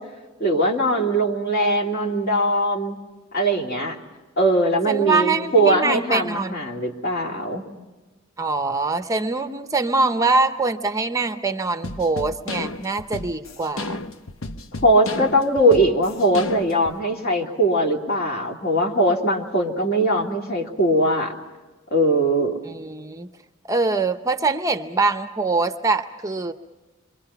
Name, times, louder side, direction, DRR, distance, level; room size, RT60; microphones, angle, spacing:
voice 1, 0.4-3.0 3.3-4.0 4.4-7.6 14.8-21.3 21.9-22.6, right 1 dB, 50° left, 0 dB, 3.0 m, -20 dB
voice 2, 4.9-6.6 8.4-14.0 22.6-23.3 23.7-26.5, right 3 dB, 15° right, 7 dB, 0.7 m, -23 dB
sound 1, 11.8-17.0, left 2 dB, 70° left, 1.0 m, -33 dB
27.5 x 24.0 x 5.8 m, 1.2 s
head